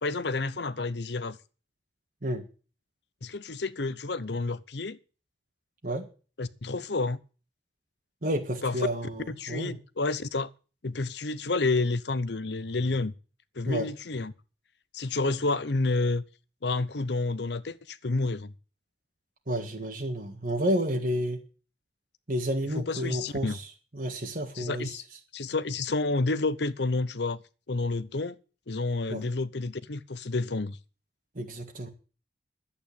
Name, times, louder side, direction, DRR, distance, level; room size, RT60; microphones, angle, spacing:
voice 1, 0.0-1.4 3.2-5.0 6.4-7.2 8.6-8.7 9.3-10.5 10.8-13.1 13.6-14.3 14.9-16.2 16.6-18.5 22.7-23.6 24.5-25.0 25.3-27.4 27.7-28.4 28.7-30.8, left 3 dB, 65° left, 0.8 m, -29 dB
voice 2, 8.2-9.8 13.7-13.9 19.5-21.4 22.3-24.9 29.1-29.2 31.3-31.9, right 1 dB, 45° right, 1.7 m, -31 dB
11.5 x 8.7 x 8.5 m
head